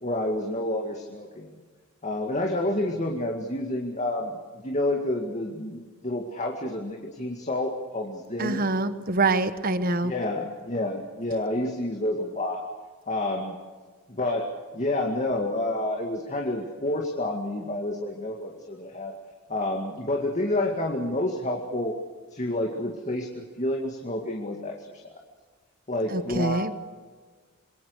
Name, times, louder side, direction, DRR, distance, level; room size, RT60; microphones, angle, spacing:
voice 1, 0.0-1.6 2.0-8.6 10.0-12.6 13.1-13.6 14.1-14.5 14.7-19.1 19.5-21.9 22.3-25.1 25.9-26.7, left 1 dB, 35° left, 1 dB, 2.1 m, -29 dB
voice 2, 8.4-10.1 26.1-26.7, right 3 dB, 40° right, 12 dB, 1.2 m, -25 dB
27.0 x 22.5 x 6.6 m, 1.5 s
head